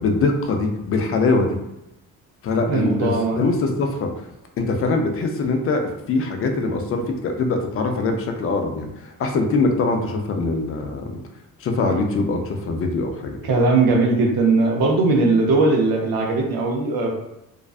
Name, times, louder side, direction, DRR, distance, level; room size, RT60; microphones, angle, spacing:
voice 1, 0.0-1.6 2.4-4.1 4.6-11.0 11.6-13.4, left 3 dB, 40° left, 3 dB, 0.4 m, -22 dB
voice 2, 2.7-3.5 13.4-17.2, right 3 dB, 80° right, 0 dB, 0.6 m, -19 dB
2.5 x 2.2 x 2.3 m, 0.88 s
cardioid pair, 120°, 36 cm